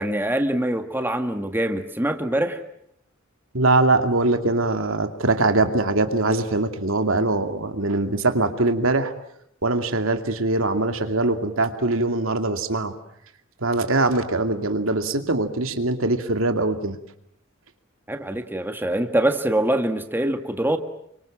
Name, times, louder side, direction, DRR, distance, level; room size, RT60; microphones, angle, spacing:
voice 1, 0.0-2.6 18.1-20.8, right 1 dB, 10° right, 6 dB, 1.7 m, -24 dB
voice 2, 3.5-9.1 9.6-12.9 13.6-17.0, right 2 dB, 75° right, 6 dB, 2.6 m, -22 dB
29.0 x 25.0 x 7.5 m, 0.73 s
head